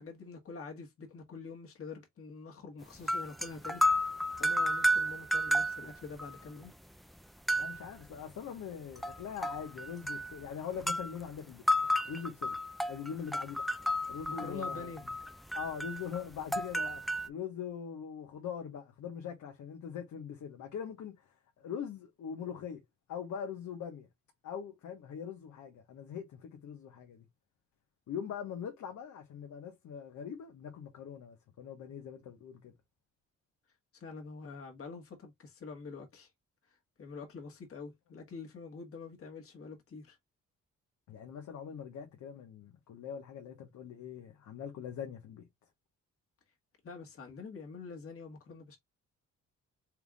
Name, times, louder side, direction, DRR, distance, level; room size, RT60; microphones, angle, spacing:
voice 1, 0.0-3.8 4.4-6.7 14.4-15.0 33.9-36.3 36.7-40.2 46.8-48.8, left 4 dB, 50° left, 1.8 m, -46 dB
sound 1, 3.0-6.4 6.6-6.7 7.5-7.9 9.0-10.4 10.8-11.1 11.7-17.3, equal, ahead, 0.5 m, -32 dB
voice 2, 7.6-11.7 12.1-12.6 12.9-13.6 14.1-15.1 15.5-24.1 24.4-27.3 28.1-32.7 41.1-45.5, left 8 dB, 70° left, 1.3 m, -42 dB
4.6 x 3.6 x 2.3 m
cardioid pair, 90°, 30 cm